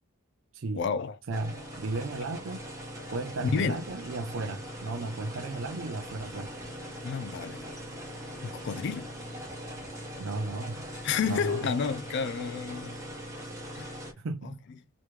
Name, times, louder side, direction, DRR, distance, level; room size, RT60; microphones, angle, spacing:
voice 1, 0.7-1.2 3.5-3.8 7.0-7.7 8.4-9.1 11.0-13.0 13.8-13.9 14.4-14.5, left 6 dB, 50° left, 0.3 m, -30 dB
sound 1, 1.3-14.1, equal, 15° right, 1.3 m, -41 dB
voice 2, 1.3-2.6 3.1-6.5 10.2-10.8 11.3-11.7 14.2-14.6, right 2 dB, 55° right, 0.4 m, -34 dB
sound 2, 4.6-12.6, left 2 dB, 5° left, 1.0 m, -54 dB
3.3 x 3.0 x 3.1 m
head